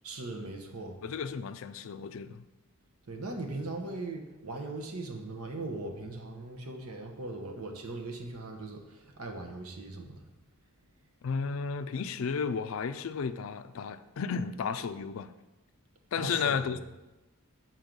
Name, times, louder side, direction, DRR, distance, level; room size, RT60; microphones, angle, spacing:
voice 1, 0.0-1.0 3.1-10.2 16.2-16.8, right 2 dB, 80° right, 3 dB, 1.0 m, -39 dB
voice 2, 1.0-2.5 11.2-15.3 16.1-16.8, left 6 dB, 65° left, 12 dB, 0.4 m, -33 dB
6.1 x 4.6 x 5.2 m, 1.0 s
head